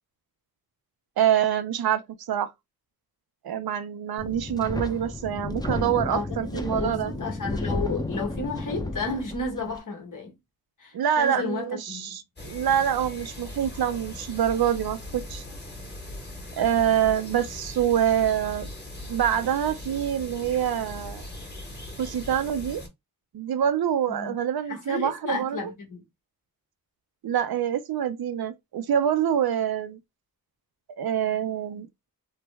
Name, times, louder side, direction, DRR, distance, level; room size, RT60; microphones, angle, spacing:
voice 1, 1.2-2.5 3.4-7.1 10.9-15.4 16.6-18.7 19.1-21.3 22.0-22.8 23.3-25.6 27.2-30.0 31.0-32.1, right 9 dB, 85° right, 0.6 m, -26 dB
Wind, 4.2-9.8, left 2 dB, 10° left, 0.6 m, -32 dB
voice 2, 6.1-10.3 10.8-12.2 24.1-24.4 24.7-26.0, left 3 dB, 60° left, 1.4 m, -32 dB
sound 1, 12.4-22.9, left 1 dB, 30° left, 1.4 m, -40 dB
3.2 x 2.1 x 3.3 m
cardioid pair, 70°, 36 cm